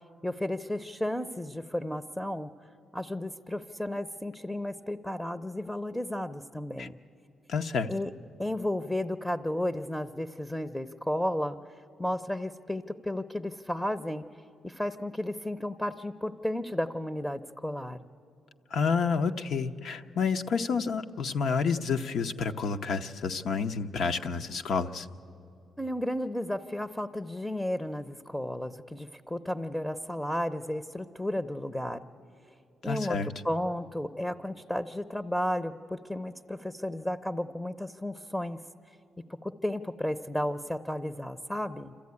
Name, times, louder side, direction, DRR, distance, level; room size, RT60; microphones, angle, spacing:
voice 1, 0.2-2.5 2.9-7.0 7.9-8.1 8.4-11.6 12.0-14.2 14.6-18.0 25.8-32.0 32.8-38.6 39.4-41.9, left 1 dB, 5° left, 10 dB, 0.6 m, -33 dB
voice 2, 7.5-7.9 18.7-25.1 32.9-33.3, left 5 dB, 70° left, 7 dB, 0.8 m, -29 dB
26.5 x 14.0 x 9.6 m, 2.7 s
cardioid pair, 85°, 0 cm